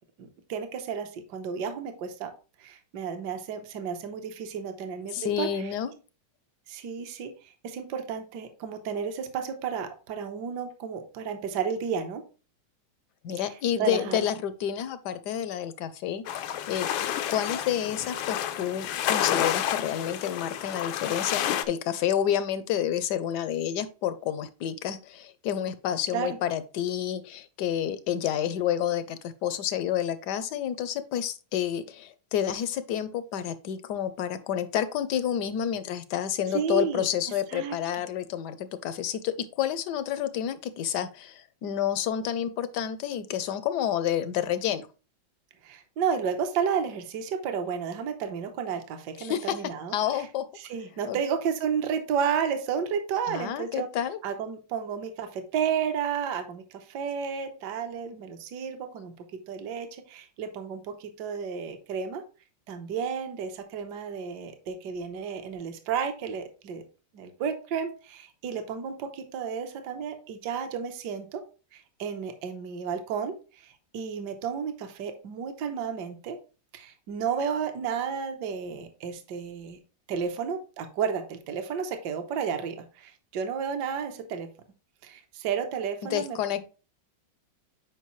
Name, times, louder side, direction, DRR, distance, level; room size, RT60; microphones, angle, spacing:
voice 1, 0.2-2.3 2.6-5.7 6.7-12.2 13.4-14.2 26.1-26.3 36.5-37.1 37.5-38.0 45.6-49.9 50.6-53.9 54.2-59.1 59.5-62.2 62.7-66.8 67.1-71.4 71.7-76.4 76.7-79.8 80.1-84.5 85.0-86.6, right 7 dB, 65° right, 7 dB, 1.4 m, -32 dB
voice 2, 5.1-5.9 13.2-16.9 17.3-44.9 49.2-49.5 49.9-50.4 51.1-51.2 53.3-54.2 86.1-86.6, left 10 dB, 70° left, 13 dB, 1.1 m, -29 dB
sound 1, 16.3-21.7, left 11 dB, 85° left, 1.4 m, -30 dB
8.3 x 5.0 x 3.1 m, 0.35 s
omnidirectional pair, 2.1 m